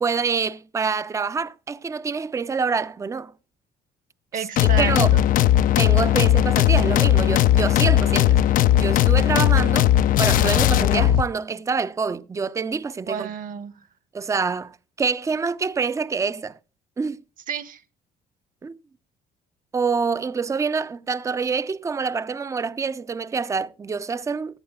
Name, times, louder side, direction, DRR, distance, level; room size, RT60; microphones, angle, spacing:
voice 1, 0.0-3.3 4.8-5.1 5.8-8.4 8.7-9.9 10.2-13.3 14.1-16.5 17.0-17.2 18.6-18.8 19.7-24.6, right 5 dB, 20° right, 0.5 m, -26 dB
voice 2, 4.3-5.3 13.1-13.8 17.5-17.8, right 7 dB, 55° right, 1.1 m, -31 dB
sound 1, 4.6-11.2, left 12 dB, 55° left, 0.4 m, -18 dB
17.5 x 11.0 x 2.3 m
cardioid pair, 110°, 17 cm